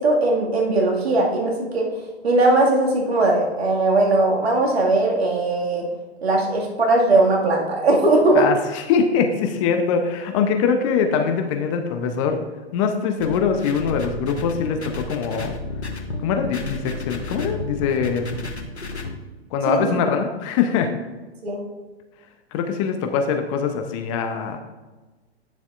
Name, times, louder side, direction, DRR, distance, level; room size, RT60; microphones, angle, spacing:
voice 1, 0.0-1.9 2.2-5.9 6.2-8.5 19.7-19.9 21.4-21.6, right 2 dB, 70° right, -1 dB, 2.1 m, -19 dB
voice 2, 8.3-12.4 12.7-15.6 16.2-18.4 19.5-20.9 22.5-24.6, left 6 dB, 30° left, 6 dB, 0.7 m, -23 dB
sound 1, 13.2-19.2, left 2 dB, 90° left, 1.0 m, -32 dB
9.7 x 7.0 x 2.5 m, 1.2 s
figure-of-eight pair, 115°, 33 cm